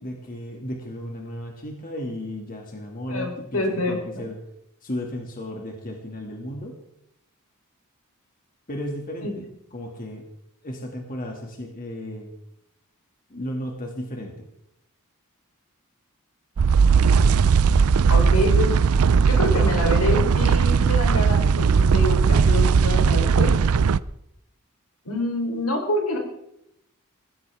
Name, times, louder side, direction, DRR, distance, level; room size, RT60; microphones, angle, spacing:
voice 1, 0.0-4.4 4.8-6.8 8.7-10.3 10.6-12.3 13.3-14.5, left 1 dB, 40° left, 1 dB, 2.3 m, -34 dB
voice 2, 3.1-4.2 9.2-9.3 18.1-18.7 19.3-23.5 25.1-26.2, left 1 dB, 85° left, 3 dB, 3.8 m, -26 dB
sound 1, 16.6-24.0, right 5 dB, 75° right, 0.5 m, -18 dB
20.5 x 16.0 x 3.6 m, 0.81 s
head